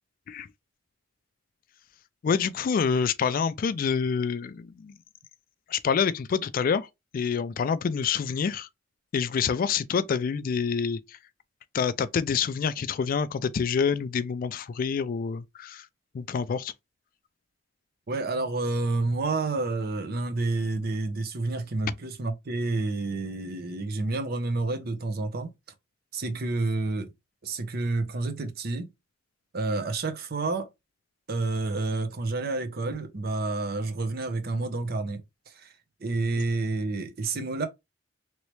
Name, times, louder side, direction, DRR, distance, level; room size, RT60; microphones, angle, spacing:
voice 1, 2.2-4.9 5.7-6.9 7.1-8.7 9.1-11.0 11.7-15.9 16.1-16.7, left 6 dB, 45° left, 0.3 m, -27 dB
voice 2, 18.1-25.5 26.1-27.1 27.4-28.9 29.5-30.7 31.3-35.2 35.6-35.7 36.0-37.7, right 3 dB, 55° right, 0.7 m, -29 dB
3.1 x 3.0 x 3.0 m
head